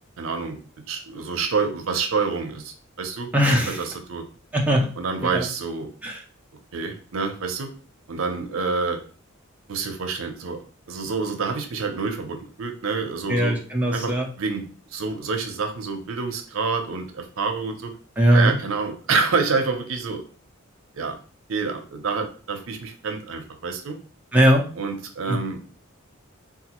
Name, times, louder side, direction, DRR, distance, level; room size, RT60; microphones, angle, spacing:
voice 1, 0.2-0.6 0.9-4.2 5.0-5.9 6.7-7.7 8.1-9.0 9.7-10.6 10.9-13.6 13.9-17.9 18.3-20.2 20.9-21.2 21.5-24.0 24.8-25.6, right 4 dB, 75° right, 5 dB, 0.6 m, -27 dB
voice 2, 3.3-3.8 4.5-4.9 5.3-5.5 6.0-6.2 13.3-14.3 18.2-18.5 24.3-24.7 25.3-25.4, equal, 5° right, -1 dB, 0.5 m, -19 dB
4.0 x 2.3 x 2.9 m, 0.39 s
head